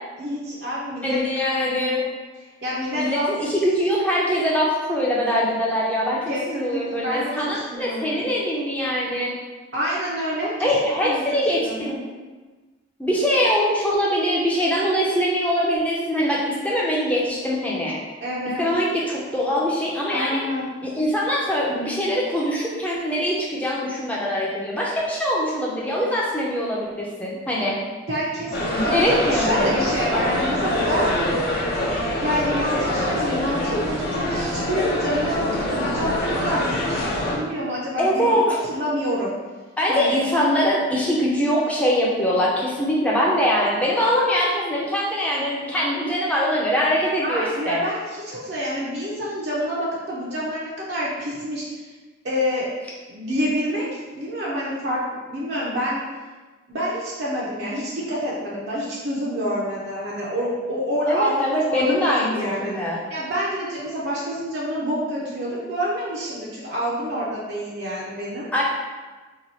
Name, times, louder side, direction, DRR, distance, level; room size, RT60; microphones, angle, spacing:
voice 1, 0.2-1.2 2.6-3.3 6.3-8.3 9.7-10.7 11.0-11.2 11.6-12.0 18.2-18.6 20.1-20.7 28.1-31.1 32.2-37.0 37.3-39.3 39.9-40.2 47.2-51.9 52.2-52.7 53.1-56.0 56.7-61.3 61.7-62.7 63.1-68.5, equal, 55° right, -6 dB, 0.6 m, -27 dB
voice 2, 1.0-2.1 2.9-9.3 10.6-12.0 13.0-18.0 18.6-20.4 20.8-27.8 28.7-29.7 38.0-38.6 39.8-47.8 61.1-63.0 68.5-68.6, equal, 5° left, -5 dB, 0.5 m, -23 dB
sound 1, 28.5-37.3, left 1 dB, 50° left, 0.6 m, -25 dB
2.9 x 2.3 x 4.0 m, 1.3 s
head